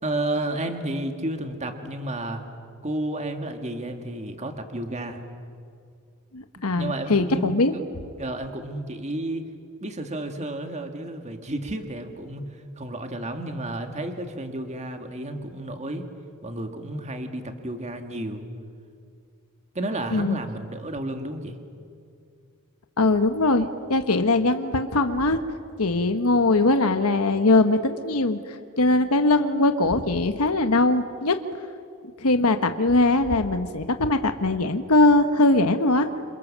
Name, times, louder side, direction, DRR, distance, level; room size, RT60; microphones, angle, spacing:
voice 1, 0.0-2.5 2.8-5.3 6.7-7.8 8.2-9.5 9.8-16.1 16.4-18.5 19.7-21.6, right 1 dB, 30° right, 6 dB, 2.1 m, -31 dB
voice 2, 6.3-7.7 20.1-20.4 23.0-25.4 25.8-31.4 32.2-36.1, left 2 dB, 80° left, 8 dB, 1.2 m, -21 dB
28.5 x 28.0 x 7.5 m, 2.4 s
head